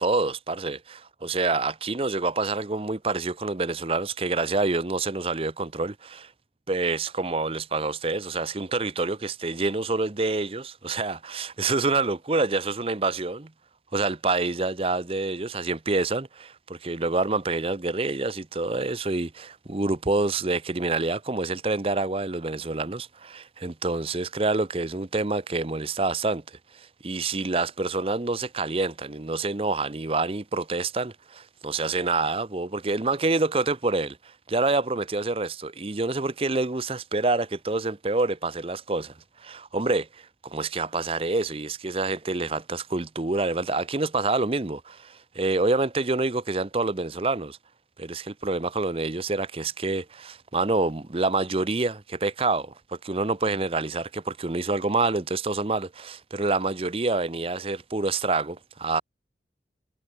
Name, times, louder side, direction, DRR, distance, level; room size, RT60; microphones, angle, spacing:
voice 1, 0.0-6.3 6.7-13.5 13.9-39.1 39.4-47.6 48.0-59.0, right 3 dB, 30° right, 0.7 m, -27 dB
head